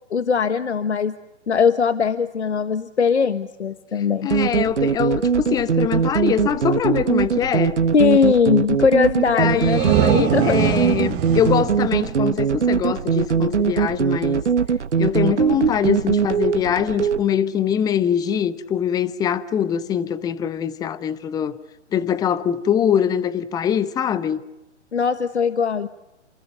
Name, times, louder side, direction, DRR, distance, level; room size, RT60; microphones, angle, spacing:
voice 1, 0.1-1.1 1.5-4.3 7.9-10.6 24.9-25.9, left 6 dB, 70° left, 1.5 m, -20 dB
voice 2, 3.9-7.8 9.3-14.4 15.0-21.6 21.9-24.4, left 9 dB, 10° left, 1.0 m, -23 dB
sound 1, 4.3-17.2, right 6 dB, 70° right, 1.4 m, -21 dB
sound 2, 9.4-13.0, right 12 dB, 25° right, 2.9 m, -24 dB
30.0 x 27.5 x 6.8 m
figure-of-eight pair, 130°, 36 cm